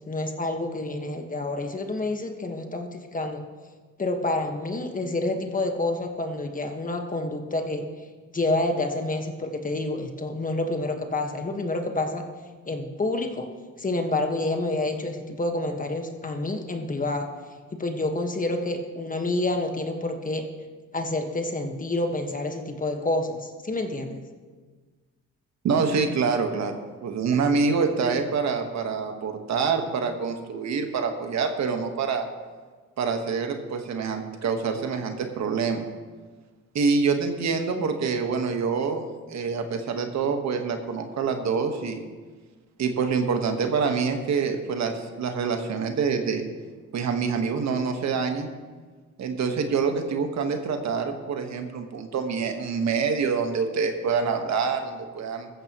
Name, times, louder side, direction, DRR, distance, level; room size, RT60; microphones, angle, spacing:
voice 1, 0.1-3.4 4.0-7.9 8.3-12.2 12.6-13.5 13.8-17.3 17.8-20.4 20.9-24.2, left 2 dB, 25° left, 4 dB, 1.5 m, -28 dB
voice 2, 25.6-32.2 33.0-35.8 36.7-42.0 42.8-46.4 46.9-48.5 49.2-55.5, right 5 dB, 65° right, 5 dB, 1.5 m, -26 dB
15.0 x 14.0 x 3.1 m, 1.4 s
cardioid pair, 90°, 30 cm